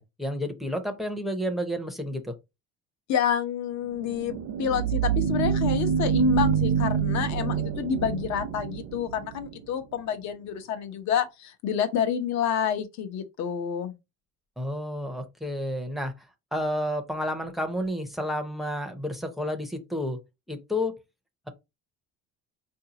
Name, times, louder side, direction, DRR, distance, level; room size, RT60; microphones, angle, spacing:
voice 1, 0.0-2.3 14.6-16.1 16.5-20.2 20.5-21.0, left 1 dB, ahead, 0.5 m, -30 dB
voice 2, 3.1-13.9, left 8 dB, 65° left, 0.8 m, -29 dB
sound 1, 4.0-9.5, right 7 dB, 60° right, 0.6 m, -26 dB
4.6 x 2.7 x 2.8 m
cardioid pair, 150°, 30 cm